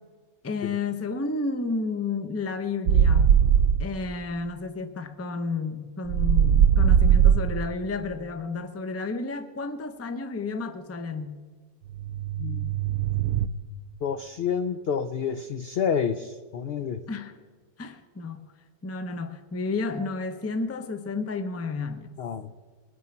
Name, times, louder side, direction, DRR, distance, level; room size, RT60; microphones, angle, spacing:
voice 1, 0.4-3.4 3.8-11.4 17.1-17.3 17.8-18.4 18.8-22.1, left 3 dB, 25° left, 0.3 m, -31 dB
sound 1, 2.9-3.9 6.1-7.7 11.9-13.5, right 8 dB, 75° right, 1.0 m, -20 dB
voice 2, 12.4-12.7 14.0-17.0 22.2-22.5, left 7 dB, 80° left, 0.5 m, -29 dB
21.0 x 9.8 x 4.4 m
omnidirectional pair, 1.6 m